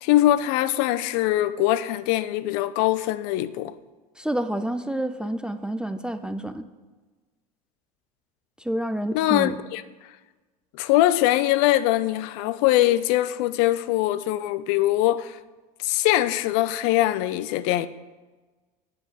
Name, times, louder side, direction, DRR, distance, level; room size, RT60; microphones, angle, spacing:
voice 1, 0.0-3.7 9.1-9.8 10.8-15.4 15.8-17.9, left 15 dB, 60° left, 0.4 m, -22 dB
voice 2, 4.2-6.6 8.6-9.6, right 1 dB, 5° right, 0.3 m, -28 dB
8.4 x 3.9 x 5.9 m
hypercardioid pair, 85°, 20 cm